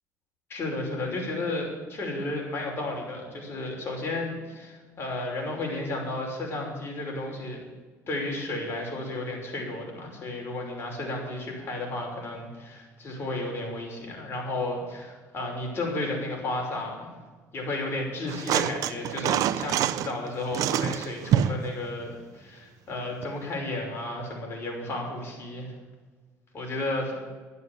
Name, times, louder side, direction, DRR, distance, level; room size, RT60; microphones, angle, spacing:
voice 1, 0.5-7.6 8.1-17.1 17.5-25.7 26.5-27.1, left 2 dB, 40° left, 0 dB, 5.9 m, -33 dB
sound 1, 18.3-20.1 20.5-21.7 23.2-23.3, right 10 dB, 65° right, 0.7 m, -26 dB
12.0 x 9.6 x 8.9 m, 1.4 s
cardioid pair, 100°, 6 cm